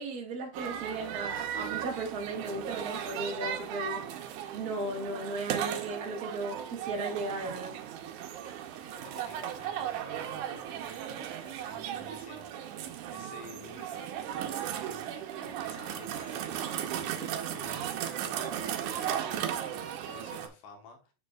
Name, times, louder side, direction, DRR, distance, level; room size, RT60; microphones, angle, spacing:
voice 1, 0.0-4.0 4.5-7.7, right 2 dB, 50° right, 1.1 m, -36 dB
sound 1, 0.5-20.5, right 10 dB, 75° right, 2.2 m, -36 dB
voice 2, 8.8-21.1, left 4 dB, 85° left, 2.8 m, -51 dB
7.4 x 6.6 x 2.3 m
omnidirectional pair, 3.7 m